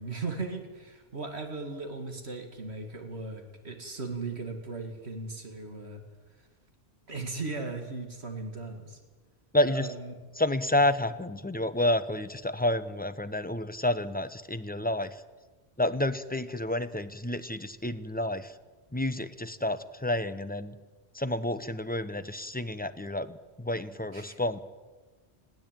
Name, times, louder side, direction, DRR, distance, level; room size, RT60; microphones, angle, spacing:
voice 1, 0.0-6.0 7.1-9.0 9.7-10.2 24.1-24.4, right 3 dB, 75° right, 4 dB, 2.6 m, -37 dB
voice 2, 9.5-9.9 10.4-15.2 15.8-18.5 18.9-20.7 21.1-24.6, left 1 dB, 10° left, 11 dB, 0.8 m, -29 dB
21.0 x 16.0 x 9.1 m, 1.3 s
omnidirectional pair, 1.1 m